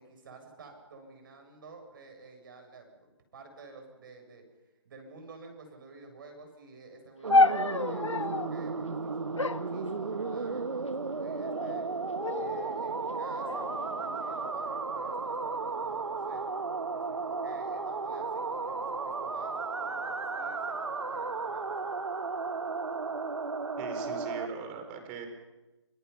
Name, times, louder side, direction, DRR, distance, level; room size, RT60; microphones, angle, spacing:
voice 1, 0.0-4.4 4.8-11.9 12.3-16.5 16.9-22.0, right 3 dB, 45° right, 4 dB, 7.6 m, -51 dB
sound 1, 7.2-24.5, right 4 dB, 75° right, 1.4 m, -34 dB
sound 2, 7.3-8.5 9.4-10.6 11.3-11.8 12.2-12.8 13.5-14.4, left 2 dB, 85° left, 1.2 m, -29 dB
voice 2, 23.8-25.3, right 5 dB, 20° right, 5 dB, 4.5 m, -40 dB
28.0 x 26.5 x 5.8 m, 1.1 s
figure-of-eight pair, 150°, 15 cm